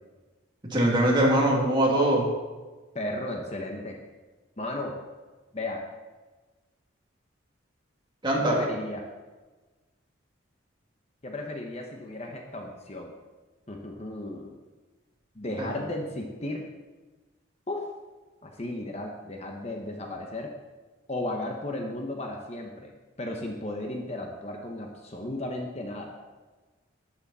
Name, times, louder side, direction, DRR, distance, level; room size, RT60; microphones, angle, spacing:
voice 1, 0.7-2.3 8.2-8.6 15.6-15.8, right 1 dB, 25° right, -3 dB, 2.6 m, -22 dB
voice 2, 2.9-4.0 4.6-5.0 5.5-5.8 8.3-9.0 11.2-13.1 13.7-14.6 15.3-16.7 17.7-17.9 18.4-20.5 21.1-22.9 23.2-26.2, left 1 dB, 30° left, 2 dB, 1.1 m, -34 dB
12.5 x 10.0 x 4.2 m, 1.3 s
head